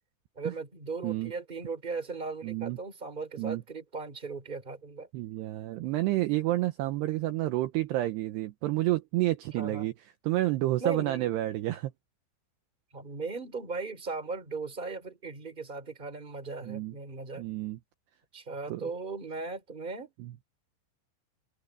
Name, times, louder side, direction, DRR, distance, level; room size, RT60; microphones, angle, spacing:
voice 1, 0.3-5.1 9.6-9.9 10.8-11.3 12.9-17.4 18.3-20.1, right 4 dB, 10° right, 3.0 m, -37 dB
voice 2, 2.4-2.8 3.4-3.6 5.1-9.9 10.2-11.9 16.6-16.9 17.4-17.8 18.7-18.8 20.2-20.3, right 16 dB, 80° right, 2.6 m, -29 dB
open air
omnidirectional pair, 5.7 m